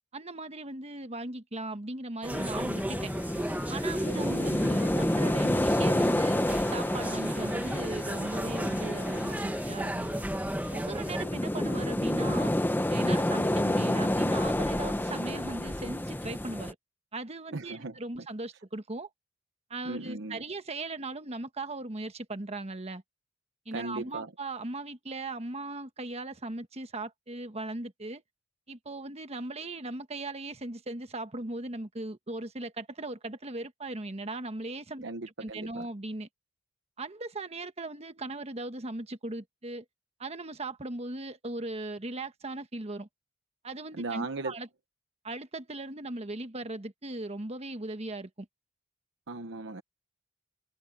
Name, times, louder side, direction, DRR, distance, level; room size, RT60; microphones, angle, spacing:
voice 1, 0.1-3.1 3.7-10.2 10.7-12.5 12.9-16.8 17.1-19.1 19.7-23.0 23.6-28.2 28.7-35.0 35.4-36.3 37.0-39.8 40.2-43.1 43.6-44.7 45.2-48.5, right 2 dB, 30° right, 1.4 m, -38 dB
sound 1, 2.2-11.3, right 1 dB, 10° right, 1.4 m, -36 dB
sound 2, 2.3-16.7, left 1 dB, 10° left, 0.9 m, -29 dB
voice 2, 4.1-4.5 17.5-18.0 19.8-20.4 23.7-24.3 35.0-35.9 43.9-44.6 49.3-49.8, right 2 dB, 65° right, 1.0 m, -37 dB
head